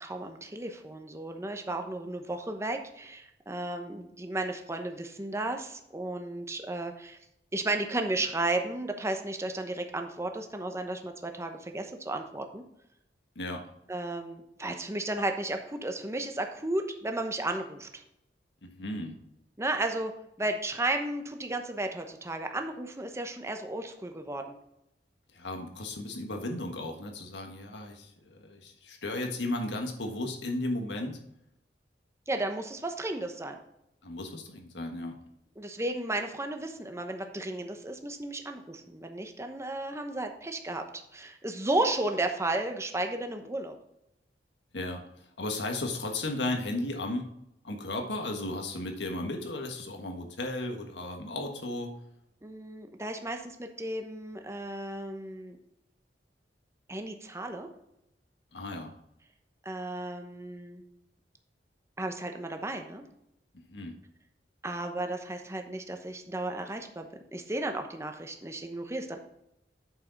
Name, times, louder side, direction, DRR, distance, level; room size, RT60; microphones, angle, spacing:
voice 1, 0.0-7.2 7.5-12.6 13.9-18.0 19.6-20.1 20.4-24.5 32.3-33.6 35.6-43.8 52.4-55.6 56.9-57.7 59.6-60.8 62.0-63.0 64.6-69.2, right 2 dB, 15° right, 5 dB, 0.9 m, -34 dB
voice 2, 18.6-19.2 25.3-31.2 34.0-35.2 44.7-45.0 45.4-47.3 47.6-51.9 58.5-58.9 63.7-63.9, left 2 dB, 85° left, 3 dB, 1.5 m, -35 dB
8.8 x 6.6 x 4.0 m, 0.82 s
head